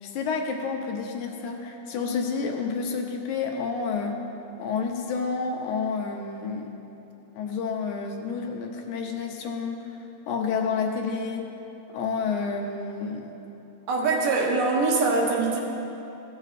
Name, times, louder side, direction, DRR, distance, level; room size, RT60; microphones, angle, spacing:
voice 1, 0.0-4.2 4.6-6.7 7.4-9.8 10.3-11.5 11.9-13.3, left 5 dB, 75° left, 2 dB, 2.1 m, -29 dB
voice 2, 13.9-15.6, right 3 dB, 85° right, -1 dB, 2.9 m, -23 dB
16.0 x 7.4 x 4.1 m, 3.0 s
omnidirectional pair, 3.7 m